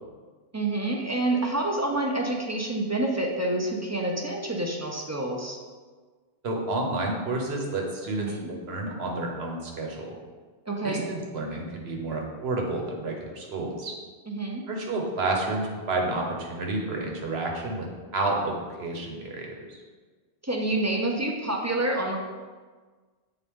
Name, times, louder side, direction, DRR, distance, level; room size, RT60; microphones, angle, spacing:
voice 1, 0.5-5.6 8.2-8.5 10.7-11.1 14.3-14.6 20.4-22.2, right 2 dB, 20° right, 0 dB, 0.4 m, -28 dB
voice 2, 6.4-10.1 10.8-13.9 14.7-17.9 18.1-19.8, right 2 dB, 70° right, 1 dB, 1.2 m, -30 dB
7.4 x 3.9 x 3.6 m, 1.4 s
omnidirectional pair, 1.1 m